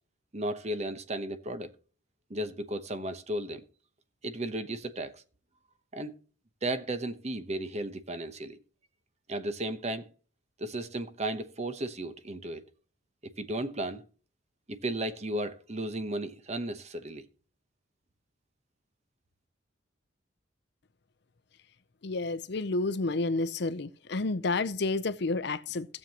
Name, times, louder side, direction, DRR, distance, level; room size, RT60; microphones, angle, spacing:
voice 1, 0.3-1.7 2.3-3.6 4.2-5.2 5.9-6.1 6.6-8.6 9.3-10.1 10.6-12.6 13.2-14.0 14.7-17.2, right 1 dB, 35° right, 1.0 m, -34 dB
voice 2, 22.0-25.9, left 3 dB, 60° left, 0.7 m, -30 dB
16.5 x 7.4 x 2.9 m
head